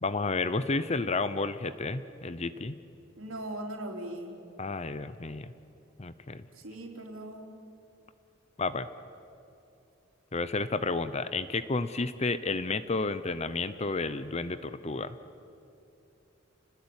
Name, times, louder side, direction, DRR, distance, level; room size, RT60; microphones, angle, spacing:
voice 1, 0.0-2.7 4.6-5.5 6.0-6.4 8.6-8.9 10.3-15.2, left 3 dB, 30° left, 13 dB, 0.7 m, -31 dB
voice 2, 3.2-4.4 6.5-7.6, right 1 dB, 90° right, 1 dB, 4.0 m, -39 dB
29.5 x 20.0 x 9.8 m, 2.8 s
head